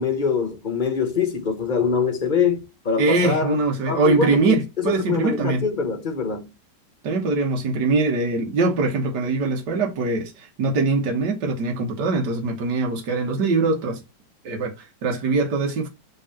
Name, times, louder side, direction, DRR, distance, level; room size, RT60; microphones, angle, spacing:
voice 1, 0.0-3.5 3.8-6.5, left 5 dB, 30° left, 1.1 m, -24 dB
voice 2, 3.0-5.6 7.0-14.0 14.4-15.9, right 3 dB, 65° right, 1.7 m, -22 dB
5.3 x 3.7 x 5.7 m
omnidirectional pair, 2.0 m